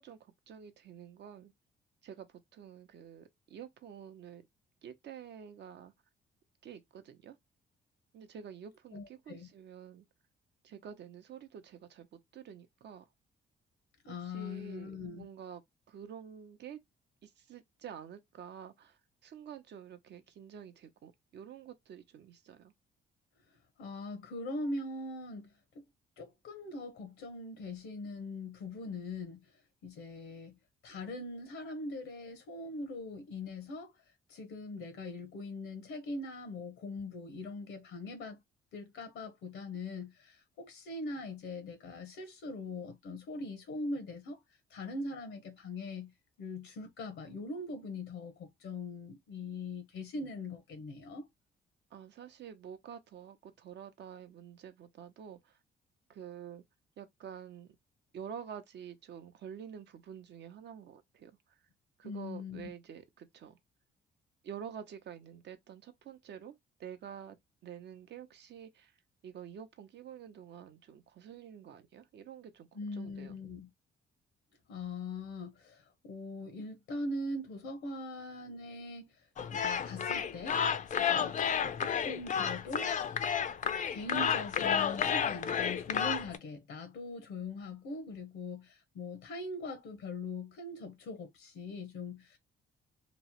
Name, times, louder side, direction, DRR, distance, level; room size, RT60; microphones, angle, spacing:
voice 1, 0.0-1.5 2.0-4.5 4.8-5.9 6.6-7.4 8.1-10.0 10.6-13.1 14.1-15.6 15.9-16.8 17.2-22.7 51.9-55.6 56.1-56.6 57.0-57.8 58.1-61.3 62.0-63.6 64.4-67.4 67.6-68.9 69.2-73.4, right 8 dB, 60° right, 0.6 m, -48 dB
voice 2, 8.9-9.5 14.0-15.3 23.8-25.5 25.7-25.8 26.2-29.5 29.8-30.6 30.8-33.9 34.3-38.4 38.7-44.4 44.7-46.1 46.4-51.3 62.0-62.7 72.7-73.7 74.7-79.1 79.5-80.6 81.0-81.4 81.8-83.0 83.9-92.4, left 2 dB, 80° left, 0.8 m, -41 dB
sound 1, 79.4-86.4, left 7 dB, 40° left, 0.4 m, -31 dB
3.0 x 2.0 x 2.8 m
cardioid pair, 90°, 20 cm